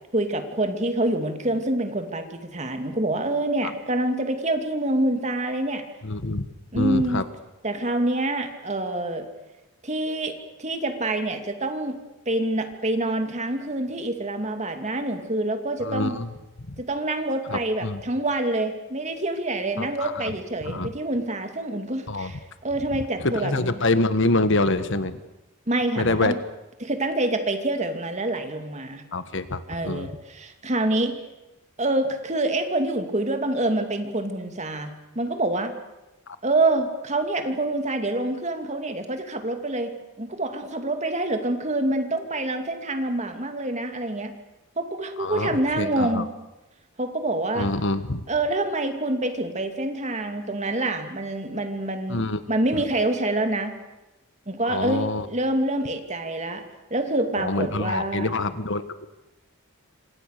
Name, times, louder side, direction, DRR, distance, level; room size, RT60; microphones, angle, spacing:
voice 1, 0.1-5.8 6.7-7.2 7.6-9.3 9.8-12.0 12.3-16.2 16.8-23.8 25.7-26.4 26.8-29.0 29.7-31.2 31.8-35.7 36.4-39.9 40.2-44.3 44.8-46.3 47.0-47.7 48.3-53.7 54.5-56.6 56.9-58.3, right 2 dB, 35° right, 6 dB, 2.7 m, -26 dB
voice 2, 6.0-6.5 6.7-7.2 15.8-16.3 16.7-16.8 17.5-18.0 19.8-20.2 20.6-20.9 22.1-22.3 23.2-25.2 26.0-26.3 29.1-30.1 36.3-36.4 45.2-45.5 45.8-46.2 47.6-48.2 52.1-52.4 54.7-55.3 57.4-58.8, left 2 dB, 60° left, 11 dB, 1.5 m, -25 dB
27.5 x 26.0 x 6.8 m, 1.0 s
head